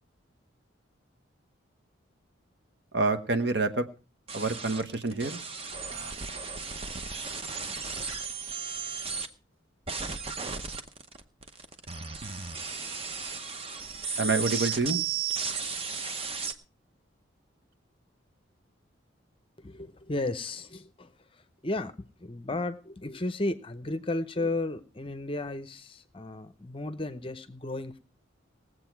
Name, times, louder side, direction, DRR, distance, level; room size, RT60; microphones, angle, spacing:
voice 1, 2.9-3.9 4.3-5.4 14.2-15.0, right 3 dB, 55° right, 1.1 m, -27 dB
sound 1, 4.3-9.3 9.9-16.5, right 5 dB, 30° right, 0.8 m, -35 dB
voice 2, 19.6-28.0, left 2 dB, 25° left, 0.7 m, -34 dB
19.0 x 7.8 x 4.6 m
head